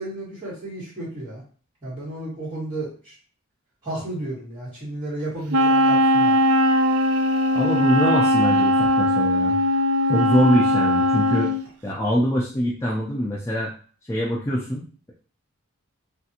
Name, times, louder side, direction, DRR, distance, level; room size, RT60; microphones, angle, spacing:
voice 1, 0.0-1.4 1.8-3.2 3.8-6.3, right 1 dB, 25° right, -11 dB, 1.4 m, -32 dB
Wind instrument woodwind instrument, 5.5-11.6, left 1 dB, 75° right, 0.4 m, -19 dB
voice 2, 7.5-9.6 10.1-11.5 11.8-13.7 14.1-15.1, equal, 15° left, -4 dB, 0.4 m, -24 dB
3.3 x 2.4 x 2.8 m, 0.43 s
head